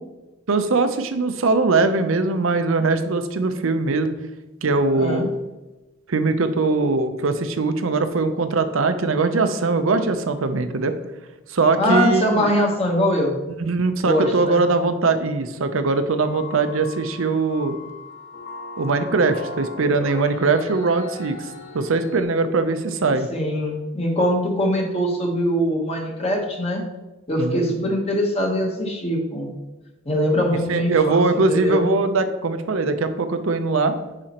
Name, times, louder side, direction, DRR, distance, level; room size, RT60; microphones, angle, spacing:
voice 1, 0.5-4.1 4.6-5.3 6.1-10.9 11.5-12.5 13.6-17.8 18.8-21.5 21.7-23.3 27.4-27.7 30.7-34.0, right 3 dB, 75° right, 9 dB, 0.6 m, -21 dB
voice 2, 4.9-5.3 11.8-13.4 14.0-14.6 23.3-26.8 27.3-29.5 30.0-31.8, equal, 30° left, 0 dB, 1.1 m, -22 dB
sound 1, 16.2-22.2, left 2 dB, 85° left, 1.0 m, -38 dB
9.9 x 4.2 x 2.9 m, 1.1 s
head